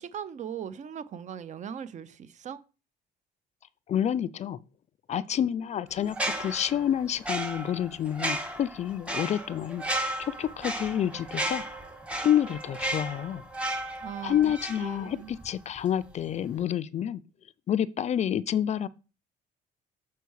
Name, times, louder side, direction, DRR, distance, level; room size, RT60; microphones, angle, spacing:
voice 1, 0.0-2.6 14.0-14.5 14.8-15.4, right 8 dB, 45° right, 0.6 m, -39 dB
voice 2, 3.9-4.6 5.1-9.9 10.2-11.6 12.1-13.4 14.2-17.2 17.7-18.9, left 10 dB, 40° left, 0.4 m, -28 dB
sound 1, 6.1-15.5 15.8-16.0, right 1 dB, 5° right, 1.3 m, -34 dB
6.8 x 4.5 x 4.7 m
cardioid pair, 110°, 17 cm